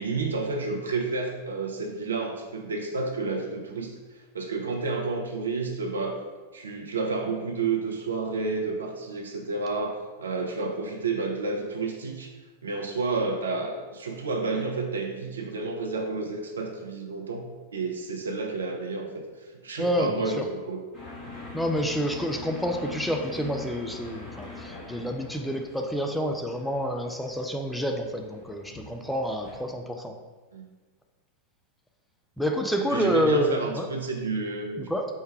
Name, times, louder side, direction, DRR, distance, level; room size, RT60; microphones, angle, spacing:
voice 1, 0.0-3.9 4.3-6.2 6.5-12.3 12.6-19.1 19.6-20.8 30.5-30.7 32.9-34.9, right 3 dB, 70° right, 2 dB, 0.6 m, -30 dB
voice 2, 19.7-20.5 21.5-30.1 32.4-33.9 34.8-35.1, equal, ahead, 3 dB, 0.4 m, -28 dB
sound 1, 20.9-29.6, left 3 dB, 30° left, 1.2 m, -43 dB
4.6 x 2.2 x 4.5 m, 1.3 s
figure-of-eight pair, 90°, 0 cm